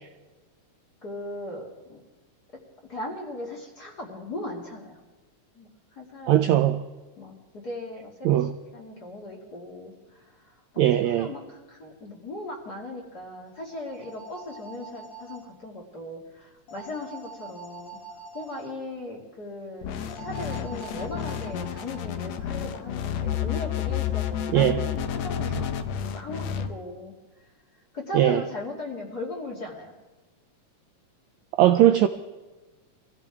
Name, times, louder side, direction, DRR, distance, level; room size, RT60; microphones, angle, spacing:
voice 1, 1.0-2.0 2.5-2.6 2.9-5.0 5.5-6.7 7.2-10.6 11.1-18.0 18.3-19.9 20.2-25.7 26.1-27.2 27.9-29.9, left 2 dB, 30° left, 2.6 m, -38 dB
voice 2, 6.3-6.8 8.2-8.5 10.8-11.3 24.5-24.8 28.1-28.4 31.6-32.1, right 12 dB, 85° right, 1.6 m, -19 dB
sound 1, 13.5-15.4 16.7-18.7 20.1-22.1, right 4 dB, 90° left, 5.8 m, -44 dB
sound 2, 19.8-26.7, left 9 dB, 70° left, 1.9 m, -30 dB
23.5 x 15.5 x 3.6 m
omnidirectional pair, 3.8 m